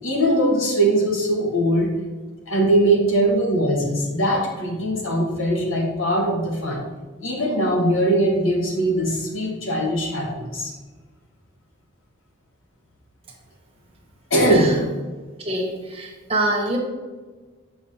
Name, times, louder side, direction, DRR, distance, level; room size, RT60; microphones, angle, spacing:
voice 1, 0.0-1.9 2.5-6.9 7.2-10.7 14.3-14.8, right 1 dB, 75° left, -1 dB, 1.5 m, -21 dB
voice 2, 15.4-16.8, right 1 dB, 30° right, 0 dB, 0.9 m, -25 dB
7.0 x 5.8 x 2.8 m, 1.4 s
head